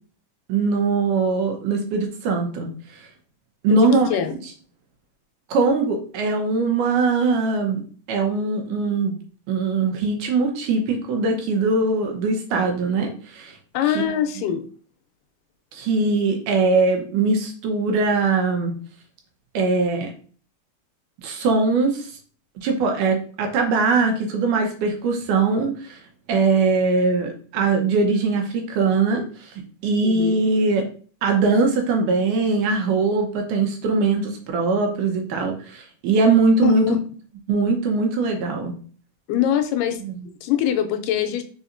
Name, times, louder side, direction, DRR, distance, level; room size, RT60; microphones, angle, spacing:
voice 1, 0.5-2.7 3.6-4.1 5.5-7.8 8.1-9.2 9.5-13.6 14.0-14.1 15.7-18.7 19.5-20.1 21.2-22.1 22.6-26.0 26.3-29.5 29.8-30.9 31.2-36.9 37.5-38.7 40.0-40.2, right 4 dB, 75° right, 3 dB, 2.3 m, -21 dB
voice 2, 3.7-4.4 13.7-14.6 30.0-30.4 36.6-37.0 39.3-40.0 40.3-41.4, left 9 dB, 85° left, 8 dB, 2.2 m, -23 dB
5.0 x 4.1 x 2.5 m, 0.43 s
omnidirectional pair, 3.8 m